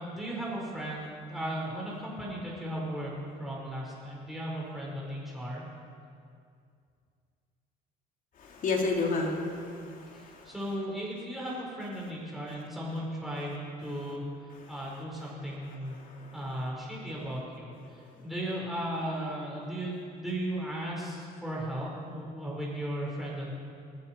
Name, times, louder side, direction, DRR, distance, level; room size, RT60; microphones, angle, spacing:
voice 1, 0.0-3.1 3.4-5.6 10.1-14.2 14.7-15.9 16.3-23.5, right 1 dB, ahead, -5 dB, 4.8 m, -36 dB
voice 2, 8.4-10.5 14.6-14.8 15.4-16.5, left 3 dB, 55° left, 0 dB, 2.8 m, -33 dB
20.5 x 12.5 x 4.6 m, 2.3 s
cardioid pair, 110°, 17 cm